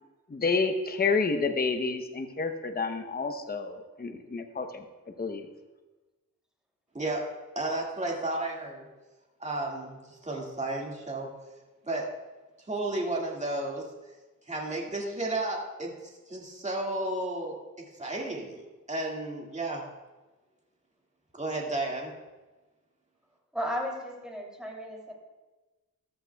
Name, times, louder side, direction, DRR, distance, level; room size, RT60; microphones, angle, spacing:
voice 1, 0.3-4.8 5.2-5.5, left 4 dB, 30° left, 5 dB, 0.8 m, -29 dB
voice 2, 7.6-8.9 9.4-11.3 11.8-12.1 12.7-13.9 14.5-15.9 16.3-19.8 21.4-22.1, right 2 dB, 20° right, -2 dB, 2.0 m, -33 dB
voice 3, 23.5-25.1, equal, ahead, -1 dB, 2.8 m, -34 dB
14.5 x 12.5 x 2.3 m, 1.2 s
wide cardioid pair, 115°, 33 cm